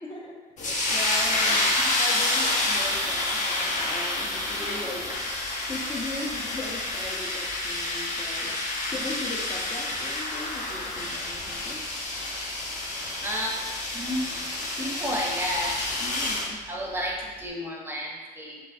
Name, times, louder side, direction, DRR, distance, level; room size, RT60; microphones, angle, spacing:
voice 1, 0.0-5.0 5.7-8.5 8.9-11.8 16.0-16.6, left 2 dB, 25° left, -2 dB, 0.6 m, -38 dB
sound 1, 0.6-16.5, left 2 dB, 45° left, 0.9 m, -28 dB
voice 2, 13.2-13.5 13.9-14.2 14.8-15.8 16.7-18.6, equal, 15° right, -2 dB, 0.7 m, -31 dB
4.5 x 3.1 x 2.6 m, 1.4 s
cardioid pair, 110°, 17 cm